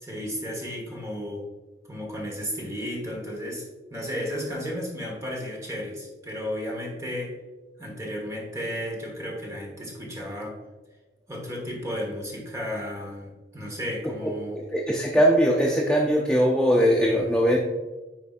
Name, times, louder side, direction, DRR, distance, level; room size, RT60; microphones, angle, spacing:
voice 1, 0.0-1.4 1.8-7.4 7.8-10.6 11.3-14.6, equal, 15° right, -1 dB, 1.3 m, -33 dB
voice 2, 14.2-17.6, equal, 5° left, -2 dB, 0.5 m, -21 dB
9.5 x 4.5 x 2.5 m, 1.2 s
head